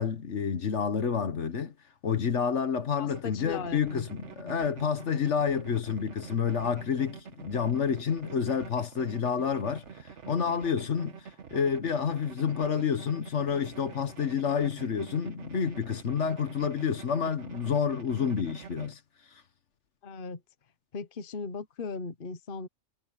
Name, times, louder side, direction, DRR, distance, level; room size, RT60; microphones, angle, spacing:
voice 1, 0.0-1.7 2.0-19.0, left 7 dB, 65° left, 1.5 m, -29 dB
voice 2, 3.0-4.1 4.4-4.9 20.0-20.4 20.9-22.7, left 4 dB, 45° left, 1.2 m, -38 dB
sound 1, 3.1-18.9, right 6 dB, 65° right, 1.5 m, -47 dB
omnidirectional pair, 1.3 m